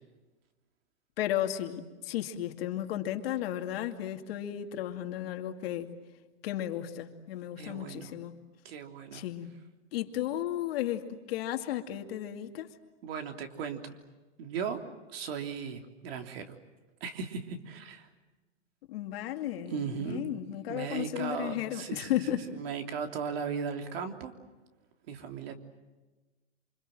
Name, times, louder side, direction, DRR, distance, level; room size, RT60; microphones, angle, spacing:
voice 1, 1.2-5.9 6.4-8.4 9.1-9.5 9.9-12.7 18.9-22.5, left 12 dB, 55° left, 2.5 m, -34 dB
voice 2, 7.6-8.1 8.6-9.2 13.0-13.9 14.4-14.8 15.1-16.6 17.0-18.1 19.7-20.3 20.7-22.1 22.5-24.3 25.1-25.5, right 6 dB, 55° right, 3.3 m, -37 dB
28.5 x 26.0 x 7.8 m
hypercardioid pair, 145°, 36 cm